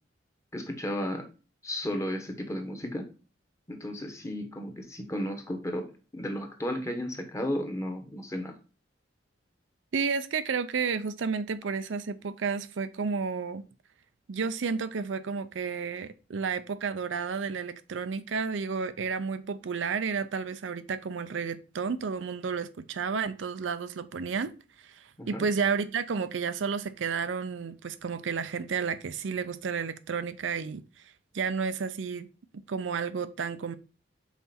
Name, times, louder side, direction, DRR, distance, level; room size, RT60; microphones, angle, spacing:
voice 1, 0.5-1.3 1.6-3.1 3.7-8.6 25.2-25.5, equal, 15° left, 1.1 m, -34 dB
voice 2, 9.9-13.6 14.3-30.8 31.3-32.3 32.7-33.7, right 5 dB, 80° right, 0.5 m, -31 dB
5.7 x 4.2 x 4.3 m
head